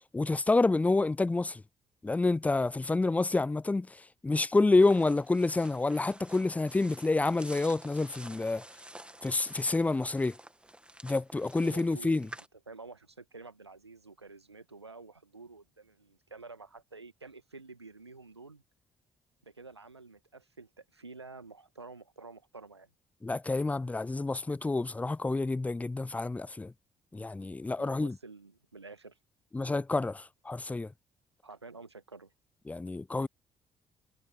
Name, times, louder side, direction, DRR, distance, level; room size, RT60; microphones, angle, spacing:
voice 1, 0.1-1.6 2.0-8.6 9.2-10.3 11.0-12.3 23.2-26.7 27.1-28.1 29.5-30.9 32.7-33.3, left 3 dB, 10° left, 0.4 m, -28 dB
sound 1, 4.8-12.5, right 1 dB, 10° right, 2.5 m, -50 dB
voice 2, 11.6-18.6 19.4-22.9 27.8-29.2 31.4-32.3, right 3 dB, 85° right, 1.9 m, -50 dB
figure-of-eight pair, 45°, 14 cm